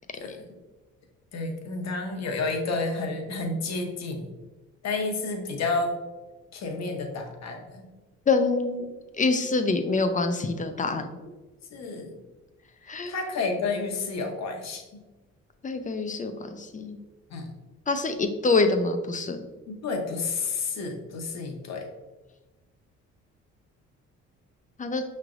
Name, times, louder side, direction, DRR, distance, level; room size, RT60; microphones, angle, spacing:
voice 1, 1.3-4.3 4.8-6.0 6.5-7.9 11.7-12.2 13.1-15.0 17.3-17.5 19.7-21.9, left 3 dB, 60° left, 3 dB, 0.9 m, -30 dB
voice 2, 8.3-8.9 9.2-11.1 12.9-13.1 15.6-17.0 17.9-19.4 24.8-25.0, left 3 dB, 25° left, 7 dB, 0.5 m, -25 dB
5.7 x 3.2 x 2.5 m, 1.2 s
cardioid pair, 90°, 30 cm